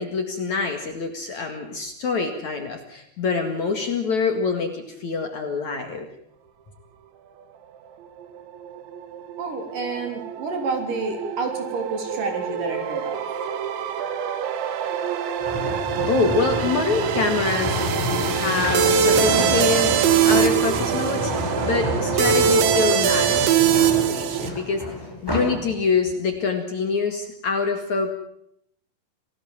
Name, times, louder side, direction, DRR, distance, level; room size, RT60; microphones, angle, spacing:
voice 1, 0.0-6.1 16.1-17.8 18.2-19.9 20.2-24.8 25.2-28.1, left 4 dB, 50° left, 5 dB, 2.8 m, -25 dB
sound 1, 8.2-24.5, right 8 dB, 90° right, 4.0 m, -23 dB
voice 2, 9.4-13.2, right 3 dB, 50° right, 5 dB, 4.8 m, -29 dB
sound 2, 15.4-25.6 26.1-26.3, left 1 dB, 5° left, 7.6 m, -28 dB
28.0 x 18.5 x 7.3 m, 0.71 s
omnidirectional pair, 5.1 m